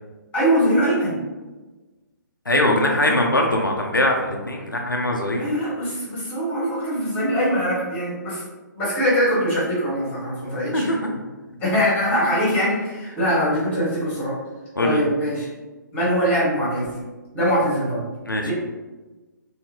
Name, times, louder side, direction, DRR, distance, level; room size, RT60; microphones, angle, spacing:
voice 1, 0.3-1.2 3.0-3.2 5.4-8.4 8.8-10.9 11.6-14.3 14.8-15.5 15.9-17.0 17.3-18.0 18.4-18.5, equal, 15° left, -8 dB, 1.2 m, -22 dB
voice 2, 2.5-5.4 10.7-11.1 14.8-15.0 18.3-18.5, left 1 dB, 90° left, 1 dB, 0.4 m, -21 dB
2.7 x 2.4 x 2.7 m, 1.2 s
figure-of-eight pair, 135°, 11 cm